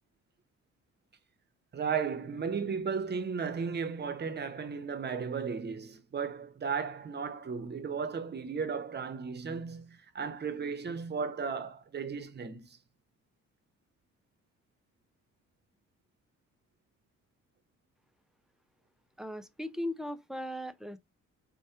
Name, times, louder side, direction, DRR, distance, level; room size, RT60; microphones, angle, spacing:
voice 1, 1.7-12.8, right 5 dB, 35° right, 0.7 m, -35 dB
voice 2, 19.2-21.0, left 1 dB, ahead, 0.4 m, -38 dB
4.6 x 2.2 x 2.8 m
cardioid pair, 90°, 30 cm